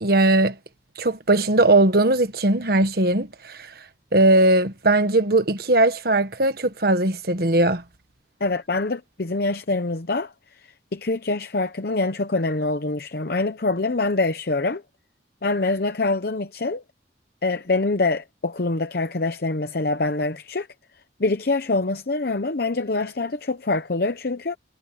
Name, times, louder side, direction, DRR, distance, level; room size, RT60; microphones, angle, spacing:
voice 1, 0.0-0.6 1.0-3.6 4.1-7.8, right 2 dB, 55° right, 1.4 m, -19 dB
voice 2, 8.4-14.8 15.4-16.8 17.4-20.7 21.2-24.6, left 3 dB, 55° left, 0.8 m, -25 dB
head